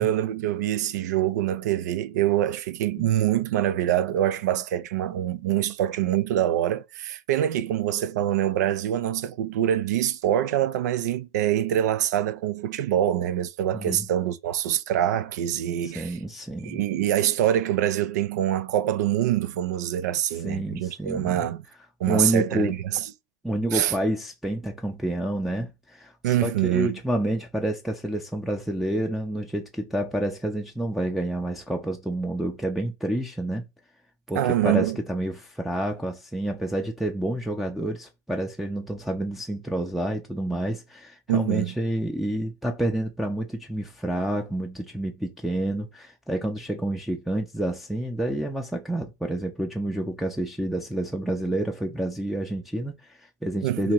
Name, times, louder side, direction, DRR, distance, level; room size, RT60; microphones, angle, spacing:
voice 1, 0.0-16.2 16.6-21.6 22.0-23.0 23.7-23.9 26.2-27.0 34.3-35.0 41.3-41.7 53.6-53.9, right 11 dB, 75° right, 0.4 m, -25 dB
voice 2, 13.7-14.1 15.8-16.8 20.4-21.5 22.1-22.8 23.4-33.6 34.3-53.9, right 1 dB, ahead, 0.5 m, -29 dB
2.9 x 2.7 x 4.4 m
hypercardioid pair, 95°, 9 cm